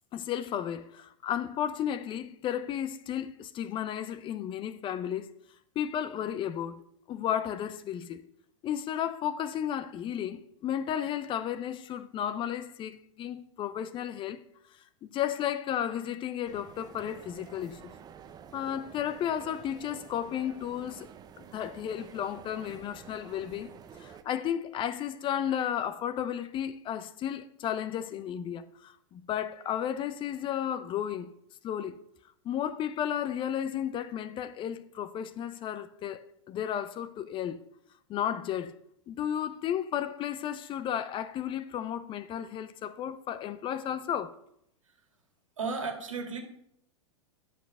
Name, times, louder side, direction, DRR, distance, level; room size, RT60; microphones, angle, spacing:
voice 1, 0.1-5.3 5.8-6.8 7.1-8.2 8.6-14.4 15.1-17.9 18.5-21.1 21.4-23.7 24.0-31.3 31.6-32.0 32.4-37.6 38.1-38.7 39.1-44.3, left 10 dB, 30° left, 0.7 m, -33 dB
sound 1, 16.4-24.2, right 8 dB, 25° right, 0.7 m, -50 dB
voice 2, 45.6-46.4, right 4 dB, 80° right, 2.1 m, -34 dB
10.0 x 6.2 x 5.4 m
hypercardioid pair, 100°, 16 cm